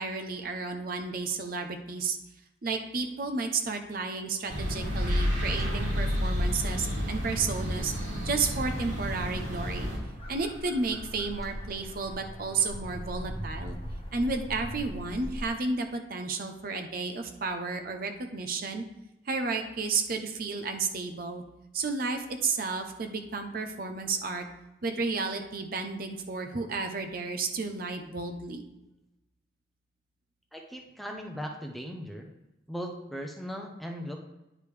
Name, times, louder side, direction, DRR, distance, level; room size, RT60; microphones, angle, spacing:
voice 1, 0.0-2.2 2.6-7.9 8.3-9.9 10.3-13.8 14.1-18.8 19.3-21.4 21.7-24.5 24.8-28.6, right 4 dB, 50° right, 5 dB, 0.7 m, -32 dB
sound 1, 4.5-10.0, equal, 90° right, 2.8 m, -30 dB
sound 2, 9.0-15.5, equal, 35° left, 1.2 m, -40 dB
voice 2, 30.5-32.3 32.7-34.2, equal, ahead, 1 dB, 0.7 m, -38 dB
9.6 x 5.0 x 3.3 m, 0.94 s
head